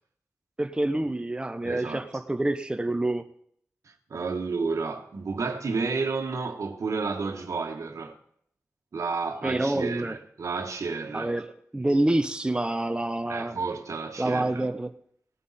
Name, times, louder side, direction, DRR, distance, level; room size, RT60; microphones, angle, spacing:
voice 1, 0.6-3.2 9.4-10.1 11.1-13.6 14.2-14.9, right 1 dB, 15° right, 0.8 m, -27 dB
voice 2, 1.6-2.1 4.1-8.2 8.9-11.4 13.3-14.7, right 4 dB, 75° right, 1.4 m, -31 dB
18.5 x 9.1 x 4.2 m
cardioid pair, 50°, 5 cm